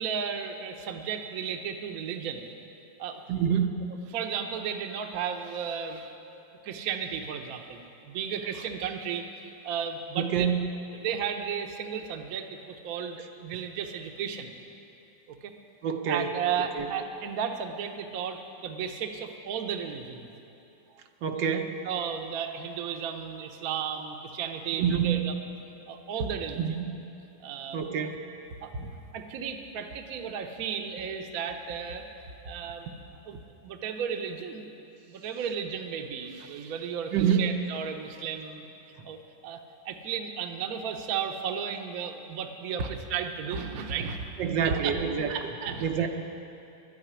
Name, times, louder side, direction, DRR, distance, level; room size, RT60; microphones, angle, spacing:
voice 1, 0.0-2.5 3.0-3.2 4.1-6.1 6.6-10.5 11.0-14.5 15.3-15.5 16.1-20.3 20.9-21.0 21.3-21.4 21.8-25.3 25.9-26.9 27.4-28.0 28.6-32.1 32.4-34.6 35.1-38.7 39.0-44.3 44.6-45.0 45.3-46.1, right 7 dB, 60° right, 5 dB, 1.2 m, -34 dB
voice 2, 3.3-3.9 10.2-10.7 15.8-16.3 16.8-16.9 21.2-21.7 24.8-25.3 26.6-27.0 27.7-28.3 37.1-37.5 44.4-45.3 45.8-46.1, right 7 dB, 75° right, 4 dB, 1.5 m, -27 dB
12.0 x 9.1 x 9.9 m, 2.8 s
omnidirectional pair, 2.0 m